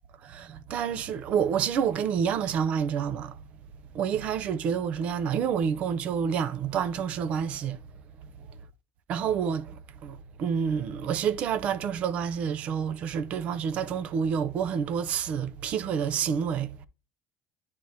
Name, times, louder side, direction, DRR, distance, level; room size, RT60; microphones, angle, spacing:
voice 1, 0.2-3.4 3.9-7.8 9.1-16.9, right 7 dB, 40° right, 0.5 m, -28 dB
10.0 x 3.5 x 2.7 m
cardioid pair, 165°, 3 cm